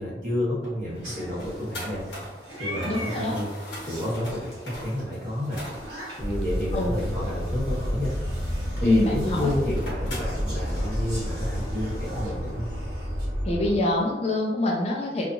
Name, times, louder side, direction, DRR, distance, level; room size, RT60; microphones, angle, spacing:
voice 1, 0.0-2.0 2.6-3.5 3.8-5.6 6.2-8.1 8.8-12.7, left 1 dB, 45° right, -8 dB, 1.2 m, -30 dB
sound 1, 0.6-12.1, equal, 75° left, 1.0 m, -42 dB
sound 2, 1.0-13.3, equal, 90° right, 1.3 m, -43 dB
voice 2, 2.8-3.4 6.7-7.0 8.8-9.7 13.4-15.3, left 2 dB, 35° left, -1 dB, 0.4 m, -25 dB
sound 3, 6.2-13.8, equal, 25° right, 1.3 m, -30 dB
2.8 x 2.5 x 2.4 m, 1.1 s
head